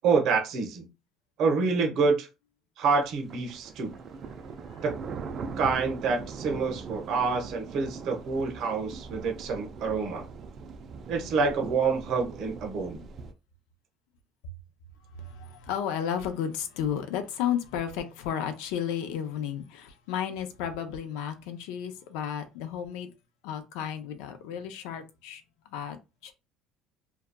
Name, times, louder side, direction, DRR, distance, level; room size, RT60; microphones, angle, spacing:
voice 1, 0.0-0.9 1.4-2.3 2.8-3.9 4.8-4.9 5.6-10.2 11.1-13.0, right 4 dB, 60° right, 0.9 m, -27 dB
sound 1, 3.0-13.3, right 5 dB, 40° right, 0.4 m, -41 dB
voice 2, 15.1-23.1 23.4-26.3, left 9 dB, 85° left, 0.5 m, -33 dB
2.7 x 2.3 x 2.2 m
cardioid pair, 130°, 0 cm